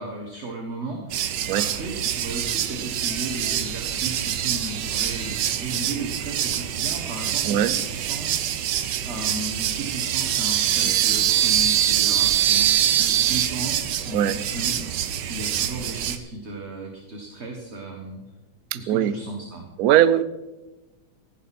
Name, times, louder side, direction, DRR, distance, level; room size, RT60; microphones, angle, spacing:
voice 1, 0.0-8.6 9.0-14.8 15.3-18.2 18.7-19.7, right 2 dB, 35° right, 1 dB, 1.5 m, -35 dB
sound 1, 1.1-16.2, right 11 dB, 65° right, 1.2 m, -24 dB
voice 2, 18.7-19.1 19.8-20.2, right 11 dB, 90° right, 14 dB, 0.8 m, -20 dB
15.0 x 10.5 x 4.2 m, 1.1 s
omnidirectional pair, 2.3 m